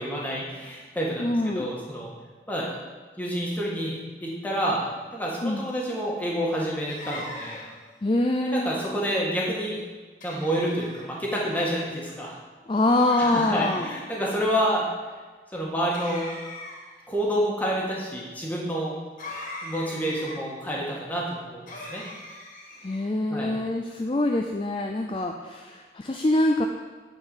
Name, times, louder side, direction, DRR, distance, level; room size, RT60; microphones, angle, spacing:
voice 1, 0.0-2.1 2.5-2.7 3.2-7.6 8.4-9.8 10.2-12.3 13.1-14.9 15.5-16.3 17.1-18.9 19.6-22.0 23.3-23.6, equal, 10° left, -4 dB, 1.8 m, -28 dB
voice 2, 1.2-1.7 5.4-5.7 8.0-8.8 12.7-13.9 22.8-26.6, left 2 dB, 30° left, 3 dB, 0.4 m, -25 dB
sound 1, 6.9-7.8 10.2-11.1 13.0-13.9 15.9-17.0 19.2-20.4 21.7-23.1, left 1 dB, 45° left, 1.8 m, -40 dB
9.6 x 4.5 x 7.1 m, 1.4 s
head